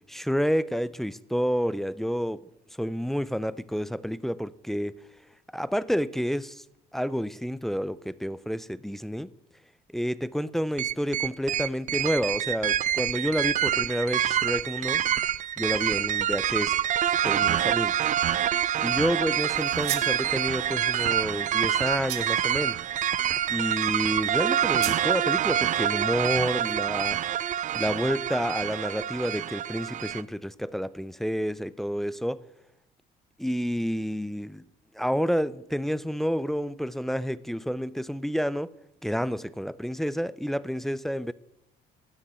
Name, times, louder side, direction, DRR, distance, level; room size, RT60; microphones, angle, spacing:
voice 1, 0.1-2.4 2.8-4.9 5.5-6.6 6.9-9.3 9.9-15.0 15.6-16.8 17.2-18.0 18.8-22.8 23.5-27.3 27.7-32.4 33.4-34.6 34.9-38.7 39.0-41.3, equal, ahead, 0.4 m, -29 dB
sound 1, 10.8-30.2, right 10 dB, 50° right, 0.5 m, -26 dB
sound 2, 19.6-20.2 22.1-22.5 24.8-25.1, right 14 dB, 80° right, 1.1 m, -34 dB
13.5 x 7.2 x 9.4 m
cardioid pair, 110°, 17 cm